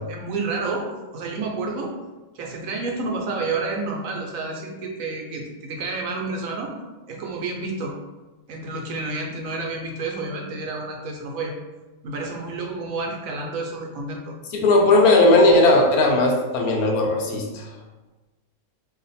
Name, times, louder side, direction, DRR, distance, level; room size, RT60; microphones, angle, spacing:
voice 1, 0.1-0.8 1.1-1.9 2.3-6.7 7.1-7.9 8.5-11.5 12.0-14.3, right 3 dB, 75° right, 0 dB, 1.0 m, -29 dB
voice 2, 14.5-17.7, left 2 dB, 90° left, 1 dB, 1.1 m, -17 dB
2.6 x 2.4 x 4.0 m, 1.2 s
omnidirectional pair, 1.5 m